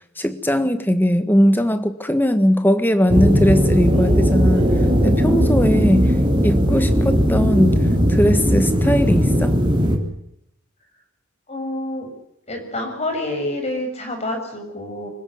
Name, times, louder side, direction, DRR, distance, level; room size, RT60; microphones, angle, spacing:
voice 1, 0.2-4.7 5.0-6.1 6.4-7.8 8.1-9.6, equal, 10° left, 10 dB, 1.5 m, -19 dB
sound 1, 3.1-10.0, equal, 20° right, 3.6 m, -17 dB
voice 2, 11.5-12.1 12.5-15.1, left 1 dB, 30° left, 4 dB, 6.8 m, -27 dB
25.5 x 15.5 x 9.4 m, 0.80 s
head